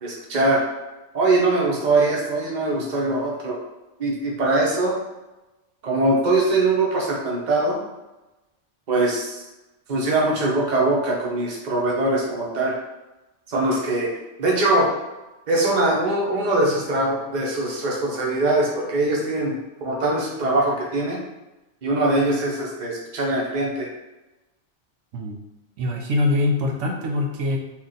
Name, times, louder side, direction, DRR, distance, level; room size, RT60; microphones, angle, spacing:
voice 1, 0.0-0.6 1.1-3.6 4.0-5.0 5.8-7.8 8.9-9.4 9.9-12.8 13.5-14.1 14.4-14.9 15.5-21.2 21.8-23.9, right 2 dB, 40° right, -2 dB, 0.8 m, -22 dB
voice 2, 25.8-27.6, left 2 dB, 80° right, 1 dB, 1.0 m, -23 dB
2.9 x 2.5 x 3.8 m, 1.0 s
omnidirectional pair, 1.2 m